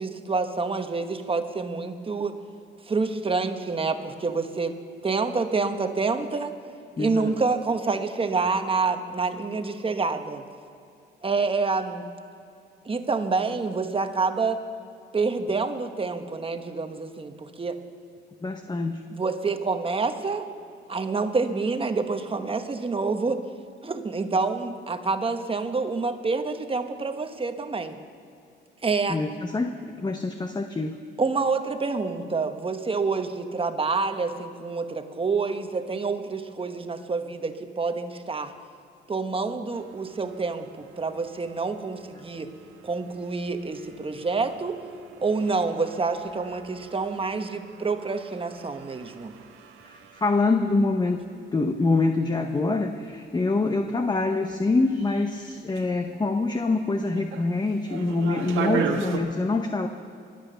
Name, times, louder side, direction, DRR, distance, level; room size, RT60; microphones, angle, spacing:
voice 1, 0.0-2.4 2.9-4.7 5.0-6.5 7.0-10.4 11.2-12.0 12.8-14.6 15.1-17.8 19.1-20.5 20.9-23.4 23.8-28.0 28.8-29.2 31.2-38.5 39.1-42.5 42.8-44.8 45.2-49.4, right 4 dB, 25° right, 7 dB, 1.2 m, -27 dB
voice 2, 7.0-7.3 18.4-19.0 29.1-31.0 49.8-51.2 51.5-59.9, left 3 dB, 20° left, 5 dB, 0.9 m, -25 dB
sound 1, 39.7-59.2, right 6 dB, 85° right, 1.5 m, -38 dB
22.5 x 8.1 x 6.8 m, 2.5 s
cardioid pair, 90°, 20 cm